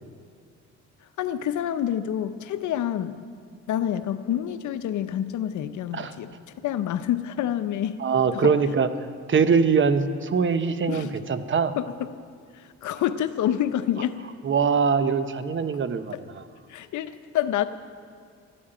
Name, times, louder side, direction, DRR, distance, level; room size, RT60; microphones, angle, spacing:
voice 1, 1.2-3.2 3.7-6.3 6.6-8.0 8.3-8.5 10.9-11.1 11.8-12.1 12.5-14.2 16.1-16.2 16.7-17.6, left 11 dB, 75° left, 11 dB, 0.8 m, -27 dB
voice 2, 8.0-8.9 9.3-11.7 14.4-16.4, right 5 dB, 40° right, 11 dB, 0.9 m, -22 dB
13.5 x 8.7 x 8.9 m, 2.2 s
cardioid pair, 90°, 30 cm